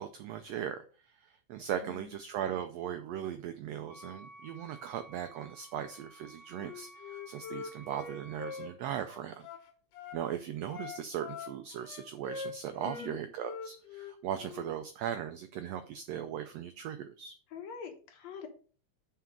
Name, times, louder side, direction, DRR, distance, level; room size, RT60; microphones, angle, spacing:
voice 1, 0.0-9.5 10.1-17.3, right 10 dB, 85° right, 8 dB, 1.4 m, -38 dB
Wind instrument woodwind instrument, 3.8-8.8, right 2 dB, 35° left, 0.9 m, -54 dB
Wind instrument woodwind instrument 2, 6.5-10.2 10.7-13.1 13.4-14.7, left 5 dB, 85° left, 2.8 m, -44 dB
voice 2, 12.8-13.2 17.5-18.5, left 7 dB, 65° left, 4 dB, 2.2 m, -44 dB
5.8 x 4.9 x 6.1 m, 0.40 s
omnidirectional pair, 3.6 m